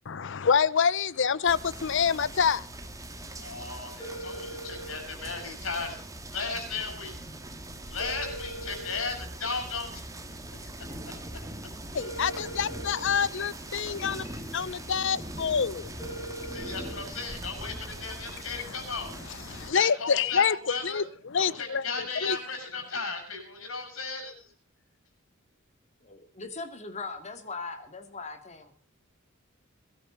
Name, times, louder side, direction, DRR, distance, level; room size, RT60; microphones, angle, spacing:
voice 1, 0.1-2.7 11.9-15.9 19.5-21.0 21.3-21.8 22.2-22.4, left 6 dB, 60° left, 0.7 m, -26 dB
sound 1, 1.5-19.7, right 1 dB, 15° right, 2.1 m, -41 dB
voice 2, 3.4-6.0 6.3-7.1 7.7-10.0 10.6-10.7 11.1-11.4 14.0-14.2 14.6-14.9 16.5-19.2 19.5-21.0 21.4-24.5, left 4 dB, 75° left, 7.8 m, -36 dB
sound 2, 4.0-5.0 8.0-9.0 12.0-13.0 16.0-17.0, right 1 dB, 15° left, 7.7 m, -40 dB
voice 3, 26.0-28.7, left 3 dB, 35° left, 2.6 m, -39 dB
22.5 x 13.0 x 4.0 m
head